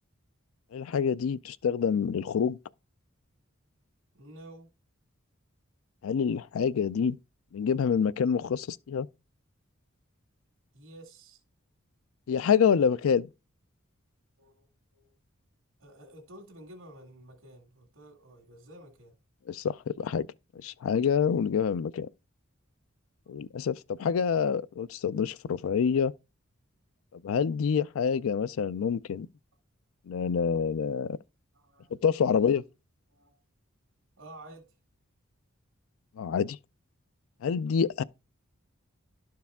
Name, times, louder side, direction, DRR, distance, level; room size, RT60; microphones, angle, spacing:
voice 1, 0.7-2.6 6.0-7.2 7.5-9.1 12.3-13.3 19.5-20.3 20.6-22.1 23.3-26.1 27.1-29.3 30.1-31.2 32.0-32.6 36.2-36.6 37.4-38.0, left 7 dB, 80° left, 0.4 m, -27 dB
voice 2, 4.1-4.7 10.7-11.4 14.4-15.1 15.8-19.2 31.5-32.0 33.1-33.4 34.2-34.7, right 1 dB, 80° right, 1.8 m, -51 dB
11.5 x 4.7 x 3.5 m
head